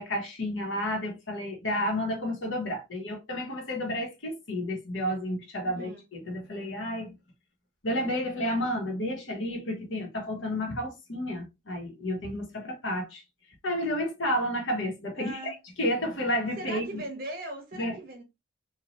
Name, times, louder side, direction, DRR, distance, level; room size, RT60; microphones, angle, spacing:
voice 1, 0.0-7.1 7.8-13.2 13.6-17.0 17.8-17.9, left 1 dB, 70° left, 1.1 m, -31 dB
voice 2, 5.6-6.0 15.1-15.6 16.6-18.2, right 1 dB, 45° right, 1.1 m, -39 dB
3.1 x 2.3 x 2.5 m
head